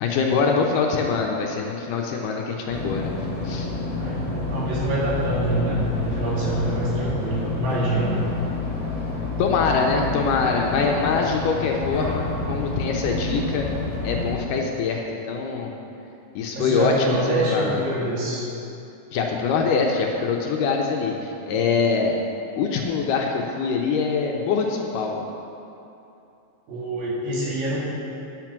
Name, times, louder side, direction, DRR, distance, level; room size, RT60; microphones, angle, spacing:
voice 1, 0.0-3.1 3.4-3.7 9.4-13.7 14.0-15.7 16.4-17.2 17.5-17.8 19.1-22.2 22.6-25.2, left 5 dB, 75° left, 1 dB, 2.1 m, -24 dB
sound 1, 2.7-14.3, left 2 dB, 50° left, 0.9 m, -28 dB
voice 2, 3.9-8.3 16.5-18.5 26.7-27.8, right 1 dB, 70° right, -6 dB, 3.8 m, -25 dB
10.5 x 6.7 x 6.0 m, 2.8 s
omnidirectional pair, 4.2 m